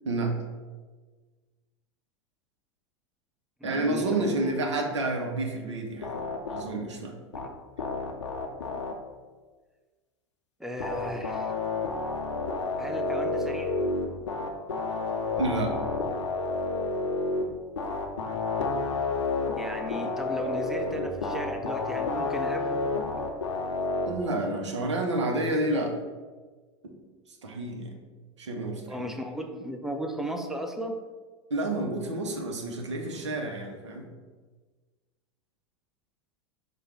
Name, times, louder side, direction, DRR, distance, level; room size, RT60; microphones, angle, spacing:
voice 1, 0.0-0.4 3.6-7.2 14.9-15.0 15.4-15.8 24.1-26.0 26.8-26.9 27.4-28.0 28.4-29.1 31.5-34.1, right 2 dB, 80° right, 2 dB, 0.7 m, -30 dB
voice 2, 3.6-4.5 10.6-11.5 12.8-13.7 19.5-22.9 28.9-31.0, equal, ahead, 4 dB, 0.5 m, -35 dB
sound 1, 6.0-6.6 7.3-7.5 7.8-8.9 10.8-17.4 17.8-24.1, left 3 dB, 85° left, 0.6 m, -30 dB
4.9 x 2.3 x 4.6 m, 1.4 s
hypercardioid pair, 90°, 15 cm